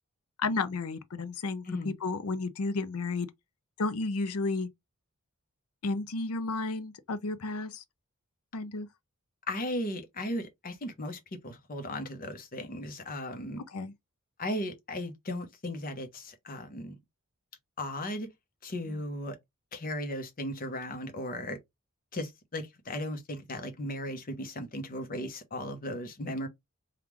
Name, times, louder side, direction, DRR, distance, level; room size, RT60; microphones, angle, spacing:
voice 1, 0.4-3.3 3.8-4.7 5.8-7.8 8.5-8.9 13.7-13.9 18.9-19.0, left 3 dB, 75° left, 0.5 m, -32 dB
voice 2, 9.5-13.6 14.4-16.9 17.8-18.3 18.6-19.4 19.7-21.6 22.1-26.5, left 1 dB, 40° left, 0.8 m, -36 dB
3.5 x 2.4 x 3.0 m
head